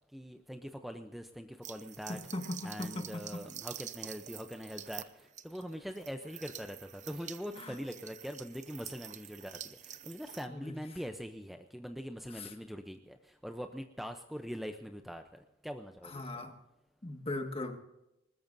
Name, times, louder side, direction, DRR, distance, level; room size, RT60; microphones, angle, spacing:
voice 1, 0.1-2.2 2.6-16.4, equal, ahead, 6 dB, 0.6 m, -43 dB
sound 1, 1.6-10.5, right 10 dB, 40° right, 0.8 m, -48 dB
voice 2, 2.1-3.4 7.6-7.8 10.5-10.7 12.4-12.5 16.0-16.5 17.0-17.8, left 2 dB, 30° left, 5 dB, 1.7 m, -39 dB
20.5 x 20.0 x 2.6 m, 0.88 s
head